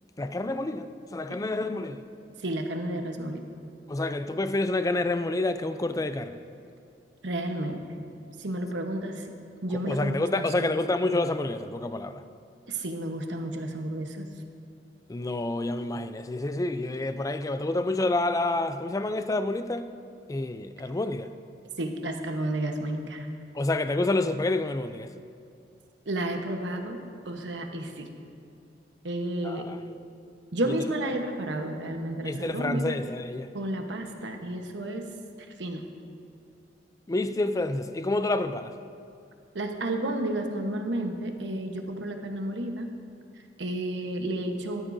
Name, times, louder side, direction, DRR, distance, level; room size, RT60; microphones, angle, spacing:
voice 1, 0.2-2.0 3.9-6.4 9.7-12.2 15.1-19.9 20.3-21.3 23.5-25.1 29.4-29.8 32.2-33.5 37.1-38.7, left 2 dB, 20° left, 10 dB, 0.4 m, -28 dB
voice 2, 2.4-3.4 7.2-7.8 8.4-9.3 9.6-10.9 12.7-14.3 21.8-23.3 26.1-28.1 29.0-29.6 30.5-33.0 33.5-35.1 35.4-35.8 39.5-42.9 43.3-44.8, right 1 dB, 85° right, 4 dB, 1.1 m, -32 dB
17.0 x 12.5 x 2.7 m, 2.4 s
head